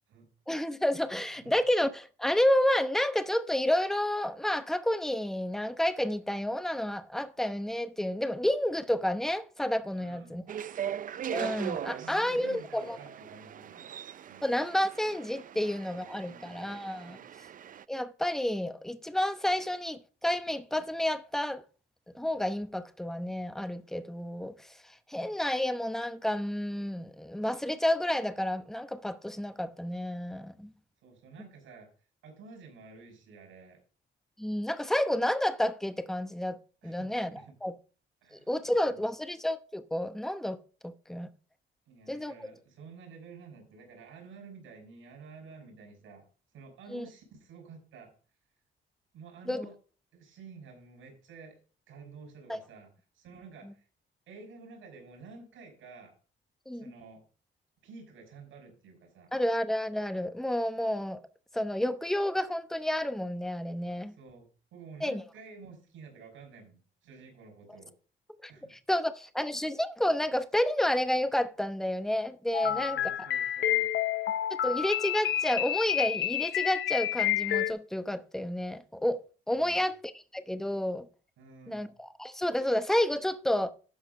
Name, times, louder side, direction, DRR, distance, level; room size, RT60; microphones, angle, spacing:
voice 1, 0.5-10.4 11.3-13.0 14.4-17.2 17.9-21.6 22.1-24.7 25.1-30.7 34.4-36.6 36.8-37.7 38.3-40.6 40.8-41.3 42.1-42.3 46.9-47.0 49.5-49.7 52.5-52.6 56.7-56.9 59.3-61.2 61.5-64.1 65.0-65.2 68.4-73.0 74.6-81.1 81.7-83.7, left 1 dB, ahead, 0.8 m, -30 dB
voice 2, 9.9-10.4 11.7-13.9 14.3-14.5 15.5-15.6 15.9-16.7 17.1-17.3 31.0-31.9 32.2-33.8 36.8-37.5 38.2-39.0 41.9-46.2 46.5-48.1 49.1-49.8 50.1-51.6 51.9-52.9 53.1-53.8 54.3-56.1 56.7-57.2 57.8-59.3 64.2-67.9 68.5-68.7 72.6-73.9 79.5-79.9 81.4-81.9, right 4 dB, 85° right, 5.7 m, -51 dB
sound 1, 10.5-17.8, right 9 dB, 45° right, 0.4 m, -40 dB
sound 2, 72.5-77.7, left 11 dB, 70° left, 0.7 m, -29 dB
12.5 x 4.9 x 5.3 m
cardioid pair, 90°, 20 cm